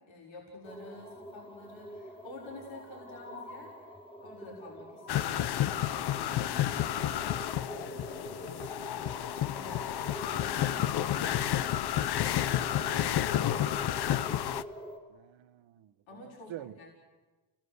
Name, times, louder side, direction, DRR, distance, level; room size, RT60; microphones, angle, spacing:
voice 1, 0.0-7.3 7.7-8.9 9.4-11.3 12.7-14.2 16.1-16.9, left 2 dB, 75° left, -2 dB, 6.1 m, -49 dB
sound 1, 0.6-15.0, equal, 10° left, 3.4 m, -45 dB
sound 2, 5.1-14.6, left 12 dB, 55° left, 0.8 m, -31 dB
voice 2, 15.1-16.7, right 13 dB, 80° right, 10 dB, 1.2 m, -47 dB
30.0 x 18.5 x 8.1 m, 1.2 s
cardioid pair, 155°, 46 cm